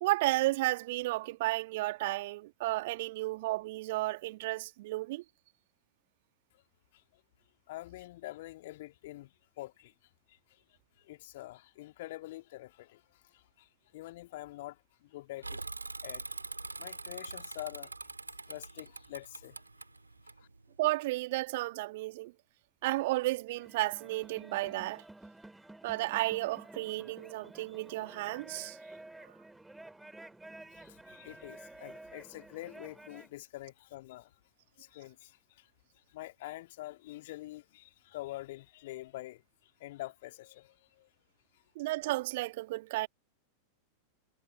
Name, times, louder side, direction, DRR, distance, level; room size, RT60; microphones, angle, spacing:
voice 1, 0.0-5.2 20.8-22.3 22.8-25.0 25.8-28.8 41.7-43.1, right 19 dB, 50° right, 1.7 m, -33 dB
voice 2, 7.7-9.9 10.3-10.6 11.0-15.7 16.0-16.3 16.8-17.9 18.5-19.6 20.4-20.5 30.7-34.3 34.8-35.7 35.9-41.1 41.5-41.6, left 17 dB, 55° left, 2.2 m, -46 dB
Bicycle / Mechanisms, 15.4-20.9, right 3 dB, 80° right, 3.3 m, -43 dB
sound 1, 23.5-33.3, right 2 dB, 5° right, 2.7 m, -51 dB
figure-of-eight pair, 90°, 0 cm